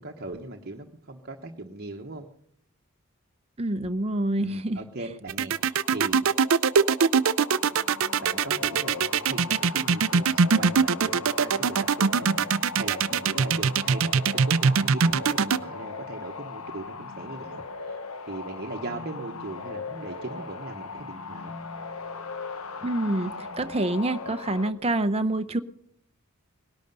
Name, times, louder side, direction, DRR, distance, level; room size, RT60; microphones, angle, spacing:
voice 1, 0.0-2.3 4.4-6.2 8.2-18.0 18.3-21.5, right 2 dB, 45° right, 2 dB, 1.1 m, -39 dB
voice 2, 3.6-4.8 22.8-25.6, right 1 dB, 25° right, 10 dB, 0.7 m, -27 dB
sound 1, 5.3-15.6, right 6 dB, 65° right, 0.5 m, -22 dB
sound 2, 5.5-24.7, left 4 dB, 75° left, 1.1 m, -39 dB
19.5 x 11.5 x 5.4 m, 0.66 s
head